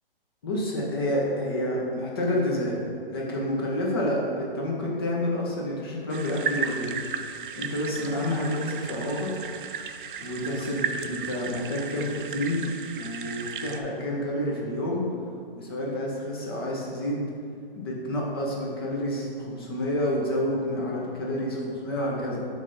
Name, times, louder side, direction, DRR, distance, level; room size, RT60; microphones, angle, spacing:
voice 1, 0.4-7.0 7.6-9.3 10.2-15.0 15.6-17.3 17.8-22.4, left 1 dB, 25° left, -3 dB, 0.8 m, -29 dB
sound 1, 6.1-13.8, right 6 dB, 60° right, 0.4 m, -35 dB
7.1 x 3.4 x 4.0 m, 2.3 s
hypercardioid pair, 175°, 30 cm